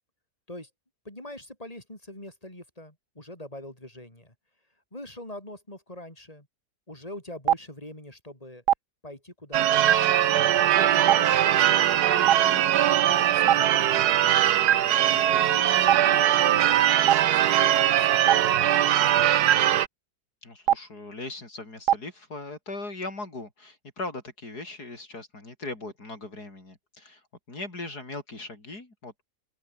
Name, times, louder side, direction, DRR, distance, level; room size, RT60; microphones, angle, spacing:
voice 1, 1.1-4.3 4.9-6.5 6.9-8.6 9.0-9.8 10.6-12.8 13.1-14.4 15.3-19.3, left 1 dB, 20° left, 7.1 m, -43 dB
Stream, 7.5-7.6 8.7-8.8 9.9-10.0 11.1-11.2 12.3-12.4 13.5-13.6 14.7-14.8 15.9-16.0 17.1-17.2 18.3-18.4 19.5-19.6 20.7-20.8 21.9-22.0, right 11 dB, 60° right, 1.0 m, -17 dB
Church bell / Car / Alarm, 9.5-19.9, right 11 dB, 80° right, 1.4 m, -21 dB
voice 2, 15.1-15.5 20.4-27.2 27.5-29.2, left 2 dB, 80° left, 5.8 m, -39 dB
open air
omnidirectional pair, 1.7 m